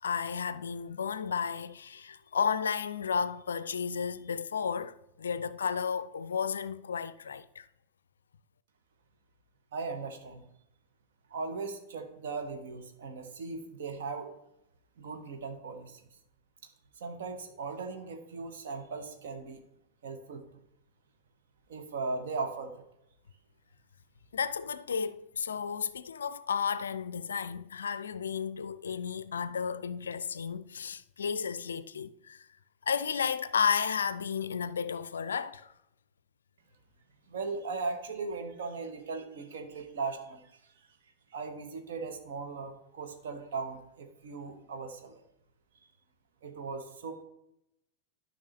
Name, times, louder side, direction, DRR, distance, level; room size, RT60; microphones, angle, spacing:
voice 1, 0.0-7.7 24.3-32.5 32.9-35.7, left 6 dB, 70° left, 0.4 m, -33 dB
voice 2, 9.7-10.4 11.3-14.3 15.0-16.1 16.6-16.7 17.0-19.6 20.0-20.4 21.7-22.8 37.3-40.9 41.3-45.2 46.4-47.2, right 4 dB, 60° right, 1.1 m, -38 dB
12.0 x 5.5 x 3.2 m
figure-of-eight pair, 90°, 0 cm